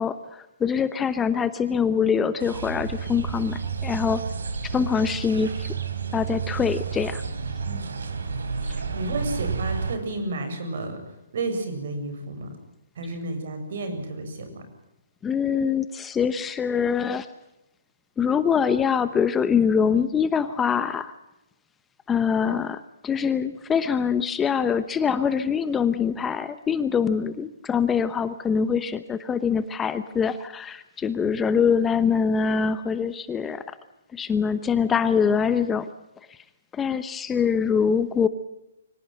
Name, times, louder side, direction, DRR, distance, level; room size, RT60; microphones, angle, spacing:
voice 1, 0.0-4.2 4.7-5.7 6.1-7.2 15.2-17.3 18.2-21.1 22.1-33.6 34.1-35.9 36.7-38.3, left 6 dB, 15° left, 13 dB, 0.9 m, -24 dB
sound 1, 2.4-10.0, right 5 dB, 80° right, 3.3 m, -31 dB
voice 2, 8.9-11.0 11.3-12.6 13.0-14.6, right 2 dB, 60° right, 8 dB, 7.0 m, -31 dB
24.0 x 18.5 x 7.8 m, 0.91 s
hypercardioid pair, 150°, 0 cm